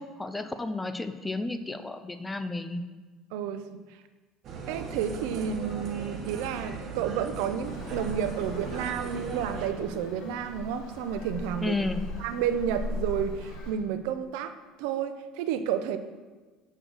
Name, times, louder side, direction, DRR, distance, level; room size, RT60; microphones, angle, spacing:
voice 1, 0.0-2.8 11.6-12.0, left 2 dB, 10° left, 9 dB, 0.3 m, -32 dB
voice 2, 3.3-3.8 4.7-11.7 12.2-14.5 14.8-16.0, right 8 dB, 80° right, 10 dB, 0.5 m, -31 dB
sound 1, 4.4-9.7, right 4 dB, 45° right, 0.9 m, -38 dB
Traffic noise roadway noise, 7.6-13.7, left 2 dB, 70° left, 1.6 m, -39 dB
6.3 x 6.2 x 3.9 m, 1.3 s
cardioid pair, 150°, 0 cm